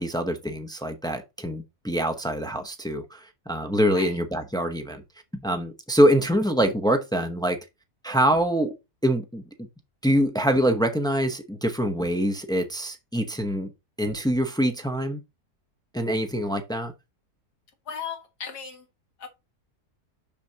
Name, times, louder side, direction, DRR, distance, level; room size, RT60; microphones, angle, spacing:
voice 1, 0.0-5.0 5.4-7.6 8.0-8.7 9.0-9.4 10.0-13.7 14.0-15.2 15.9-16.9, equal, 5° left, 0.3 m, -24 dB
voice 2, 17.9-18.9 19.2-19.3, left 7 dB, 85° left, 2.2 m, -36 dB
7.0 x 6.5 x 2.9 m
omnidirectional pair, 1.7 m